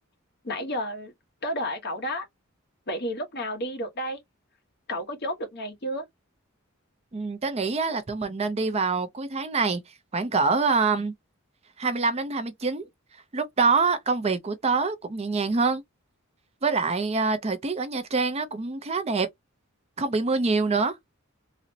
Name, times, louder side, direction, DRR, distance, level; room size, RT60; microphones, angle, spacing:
voice 1, 0.4-1.1 1.4-2.3 2.9-4.2 4.9-6.1, equal, 50° left, 1.0 m, -31 dB
voice 2, 7.1-11.1 11.8-12.9 13.3-15.8 16.6-19.3 20.0-21.0, right 4 dB, 30° right, 0.5 m, -25 dB
3.9 x 2.0 x 2.6 m
head